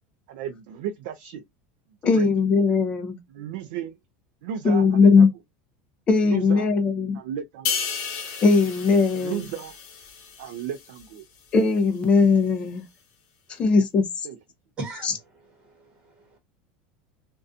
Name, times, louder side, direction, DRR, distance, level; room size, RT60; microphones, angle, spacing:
voice 1, 0.3-1.4 2.1-2.3 3.3-3.9 4.4-5.3 6.3-6.7 7.1-7.7 9.2-9.7 10.4-11.2 14.2-14.4, right 9 dB, 70° right, 0.4 m, -33 dB
voice 2, 2.0-3.2 4.6-5.3 6.1-7.2 8.4-9.5 11.5-12.8 13.6-14.0 15.0-15.1, left 4 dB, 20° left, 0.5 m, -19 dB
sound 1, 7.7-11.2 11.6-11.8, left 6 dB, 55° left, 0.9 m, -33 dB
voice 3, 14.8-16.1, right 2 dB, 20° right, 1.0 m, -39 dB
2.5 x 2.2 x 2.4 m
cardioid pair, 170°, 5 cm